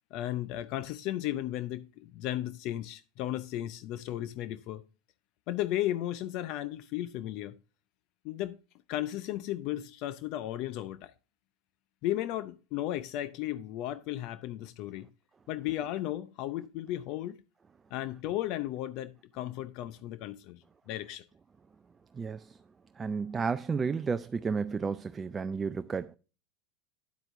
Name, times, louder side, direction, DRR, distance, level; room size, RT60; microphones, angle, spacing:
voice 1, 0.1-4.8 5.5-7.6 8.2-8.6 8.9-11.1 12.0-15.1 15.5-17.4 17.9-21.3, left 13 dB, 55° left, 0.5 m, -35 dB
voice 2, 22.1-22.6 23.0-26.2, right 5 dB, 20° right, 0.4 m, -32 dB
9.3 x 7.9 x 2.6 m
hypercardioid pair, 110°, 0 cm